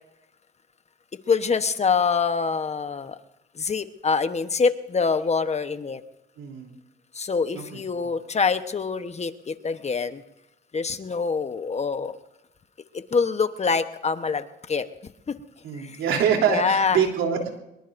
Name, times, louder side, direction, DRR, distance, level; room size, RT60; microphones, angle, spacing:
voice 1, 1.3-3.2 3.5-6.0 7.1-10.2 10.7-12.2 12.9-15.4 15.8-16.0 16.5-17.0, left 5 dB, 35° left, 10 dB, 1.1 m, -25 dB
voice 2, 6.4-6.8 7.5-7.8 15.6-17.6, right 7 dB, 85° right, 2 dB, 3.4 m, -25 dB
24.0 x 22.0 x 2.6 m, 0.90 s
cardioid pair, 90°, 20 cm